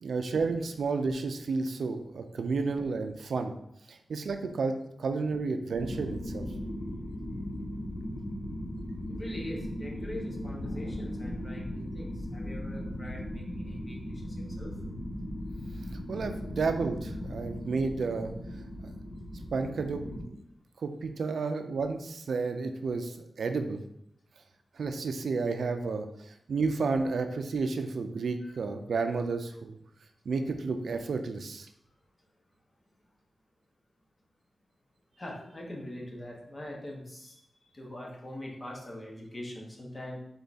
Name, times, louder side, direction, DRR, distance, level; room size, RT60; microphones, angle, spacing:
voice 1, 0.0-3.5 3.9-4.7 5.0-6.4 16.1-18.3 18.8-18.9 19.5-20.0 20.8-23.8 24.8-26.0 26.5-29.7 30.3-31.7, right 4 dB, 80° right, 6 dB, 0.4 m, -31 dB
sound 1, 5.8-20.2, equal, 65° left, 0.9 m, -38 dB
voice 2, 9.1-14.7 28.4-28.5 35.2-37.4 37.7-40.2, left 1 dB, 30° left, -1 dB, 1.0 m, -42 dB
3.7 x 3.5 x 4.1 m, 0.77 s
wide cardioid pair, 160°, 0 cm